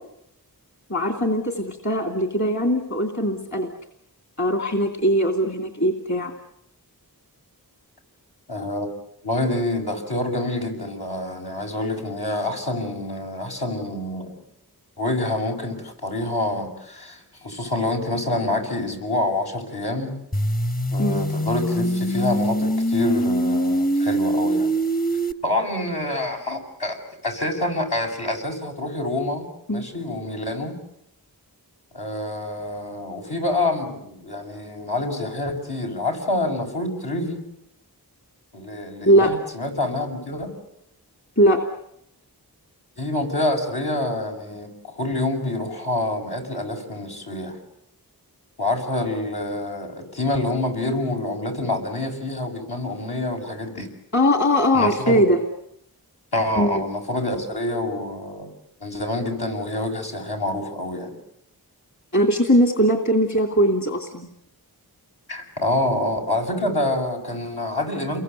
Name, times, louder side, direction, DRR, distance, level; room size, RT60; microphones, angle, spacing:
voice 1, 0.9-3.7 4.4-6.3 21.0-21.3 29.7-29.9 39.1-39.3 41.4-41.6 54.1-55.4 56.6-56.9 62.1-64.3, equal, 45° left, 4 dB, 2.9 m, -20 dB
voice 2, 8.5-8.9 9.2-14.4 15.0-20.1 20.9-24.7 25.4-27.0 27.2-29.5 29.7-30.8 31.9-37.4 38.5-40.5 43.0-47.6 48.6-53.9 54.7-55.2 56.3-58.5 58.8-61.2 65.3-68.2, left 1 dB, 80° left, 0 dB, 6.9 m, -27 dB
sound 1, 20.3-25.3, equal, 25° left, 1.0 m, -23 dB
29.5 x 22.5 x 8.2 m, 0.77 s
wide cardioid pair, 45°, 39 cm